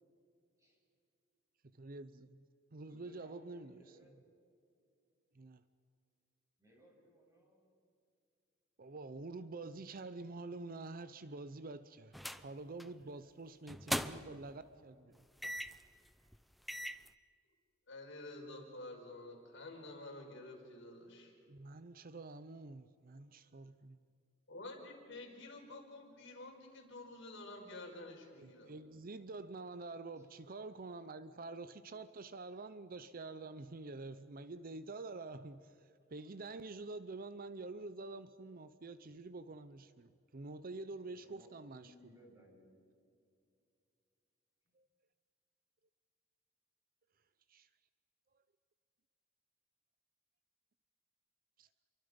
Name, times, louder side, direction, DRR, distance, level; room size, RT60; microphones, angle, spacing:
voice 1, 1.7-2.4 2.7-4.0 5.3-5.6 8.8-15.2 21.5-24.0 28.4-41.9 44.8-44.9 47.5-47.7 51.6-51.7, right 3 dB, 45° right, 0.7 m, -47 dB
voice 2, 2.9-4.2 6.6-7.7 30.2-30.3 41.0-41.5 41.8-42.8, equal, 15° right, 7.4 m, -63 dB
sound 1, 12.1-12.5 12.8-13.0 13.7-14.4 15.4-15.9 16.3-16.4 16.7-17.1, equal, ahead, 0.7 m, -39 dB
voice 3, 17.9-21.3 24.5-28.7, left 2 dB, 65° left, 5.2 m, -50 dB
29.5 x 23.5 x 5.3 m
head